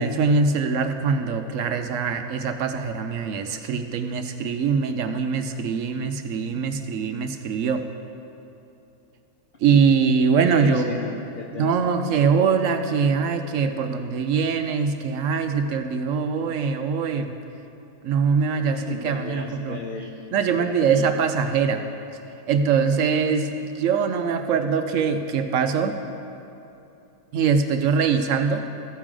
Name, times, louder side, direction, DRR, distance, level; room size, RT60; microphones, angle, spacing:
voice 1, 0.0-7.8 9.6-10.9 11.6-17.4 18.0-19.8 20.3-21.8 22.5-26.0 27.3-28.6, right 5 dB, 70° right, 7 dB, 0.9 m, -23 dB
voice 2, 10.4-12.0 18.7-20.1 20.5-21.1, left 4 dB, 80° left, 3 dB, 0.4 m, -35 dB
14.5 x 9.6 x 3.8 m, 2.8 s
omnidirectional pair, 1.6 m